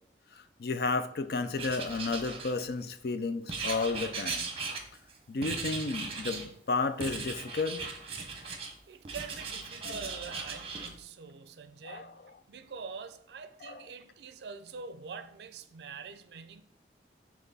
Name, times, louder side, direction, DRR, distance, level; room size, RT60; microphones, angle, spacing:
voice 1, 0.3-4.5 5.3-7.8 9.8-10.0 11.8-12.1 13.6-13.7, left 3 dB, 60° left, 0.5 m, -32 dB
Writing, 1.6-2.9 3.5-5.1 5.4-6.5 7.0-8.7 9.0-10.9, right 4 dB, 30° right, 0.8 m, -38 dB
voice 2, 8.9-12.2 12.5-16.6, right 5 dB, 65° right, 0.4 m, -44 dB
6.0 x 3.0 x 5.3 m
head